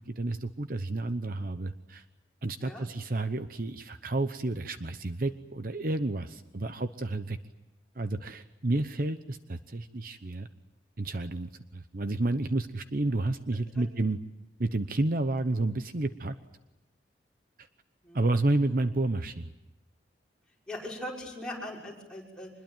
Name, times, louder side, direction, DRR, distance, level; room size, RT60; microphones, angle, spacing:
voice 1, 0.1-2.0 2.4-7.4 8.0-10.5 11.0-14.2 14.6-16.3 17.6-17.7 18.1-19.5, right 2 dB, 50° right, 10 dB, 0.9 m, -30 dB
voice 2, 20.7-22.5, left 1 dB, 5° left, -4 dB, 6.0 m, -40 dB
25.5 x 21.5 x 9.0 m, 0.97 s
head